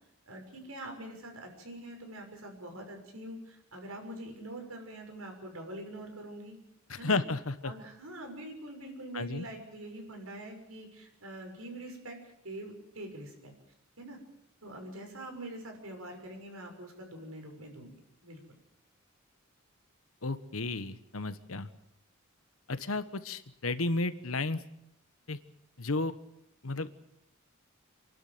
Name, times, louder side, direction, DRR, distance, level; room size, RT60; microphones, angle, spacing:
voice 1, 0.3-6.6 7.0-7.2 7.6-12.2 12.4-13.5 14.0-14.2 14.6-17.9 18.2-18.4, right 1 dB, 85° right, 3 dB, 6.4 m, -44 dB
voice 2, 6.9-7.7 9.1-9.5 20.2-21.7 22.7-24.6 25.3-25.4 25.8-26.1 26.6-26.9, left 3 dB, 80° left, 12 dB, 1.3 m, -32 dB
28.5 x 12.0 x 9.3 m, 0.81 s
head